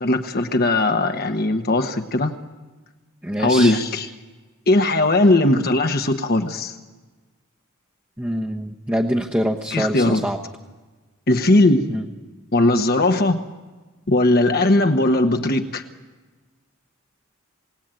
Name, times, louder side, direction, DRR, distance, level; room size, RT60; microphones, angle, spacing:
voice 1, 0.0-2.3 3.4-4.1 4.7-6.7 9.7-10.3 11.3-11.8 12.5-13.4 14.1-15.8, left 2 dB, 45° left, 6 dB, 1.2 m, -18 dB
voice 2, 3.2-3.8 8.2-10.4 11.9-12.0, equal, 10° right, 0 dB, 1.0 m, -24 dB
27.5 x 17.5 x 9.0 m, 1.3 s
head